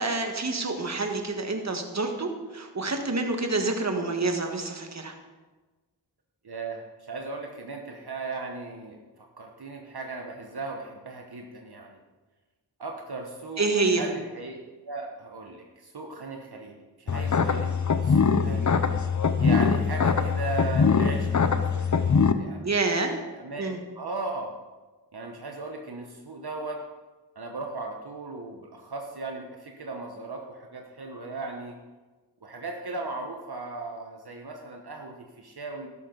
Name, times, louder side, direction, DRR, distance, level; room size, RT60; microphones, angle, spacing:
voice 1, 0.0-5.1 13.6-14.1 22.6-23.1 23.6-23.8, right 3 dB, 40° right, 4 dB, 1.5 m, -27 dB
voice 2, 6.4-12.0 12.8-14.6 14.8-18.6 19.4-22.0 22.3-22.7 23.3-24.5 25.1-26.8 27.3-31.7 32.4-35.9, right 3 dB, 65° right, 2 dB, 1.2 m, -37 dB
sound 1, 17.1-22.3, left 5 dB, 45° left, 0.7 m, -23 dB
13.0 x 11.0 x 4.0 m, 1.3 s
wide cardioid pair, 60°, 42 cm